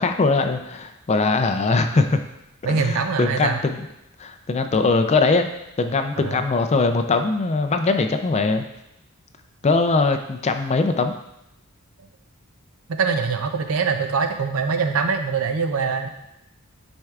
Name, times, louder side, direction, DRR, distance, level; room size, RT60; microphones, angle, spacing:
voice 1, 0.0-2.2 2.6-3.9 4.2-5.5 5.8-8.6 9.6-11.1, left 3 dB, 30° left, 7 dB, 0.4 m, -21 dB
voice 2, 2.6-3.6 6.2-6.4 12.9-16.1, right 5 dB, 70° right, 6 dB, 0.6 m, -23 dB
9.6 x 4.4 x 2.4 m, 0.87 s
head